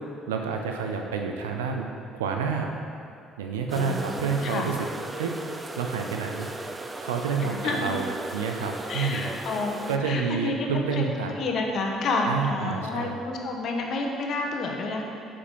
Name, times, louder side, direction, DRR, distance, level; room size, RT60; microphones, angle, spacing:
voice 1, 0.3-1.9 2.1-2.7 3.4-4.8 5.2-5.3 5.8-6.5 7.0-9.3 9.9-11.3 12.2-13.2, right 5 dB, 75° right, 3 dB, 0.5 m, -29 dB
voice 2, 3.7-4.7 7.4-8.0 8.9-15.0, left 3 dB, 55° left, 1 dB, 1.2 m, -30 dB
sound 1, 3.7-10.0, right 2 dB, 20° right, 0.6 m, -37 dB
8.2 x 5.2 x 5.4 m, 2.5 s
figure-of-eight pair, 50°, 0 cm